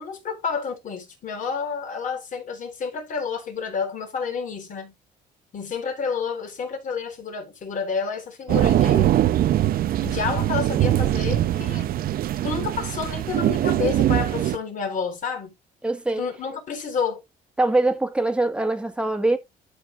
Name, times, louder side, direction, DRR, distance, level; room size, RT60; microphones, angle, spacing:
voice 1, 0.0-4.9 5.5-9.3 10.0-11.9 12.4-15.5 16.2-17.2, left 5 dB, 50° left, 4.0 m, -29 dB
sound 1, 8.5-14.6, right 12 dB, 60° right, 0.7 m, -22 dB
voice 2, 15.8-16.2 17.6-19.4, right 2 dB, 5° right, 1.7 m, -23 dB
12.0 x 6.3 x 2.6 m
cardioid pair, 110°, 17 cm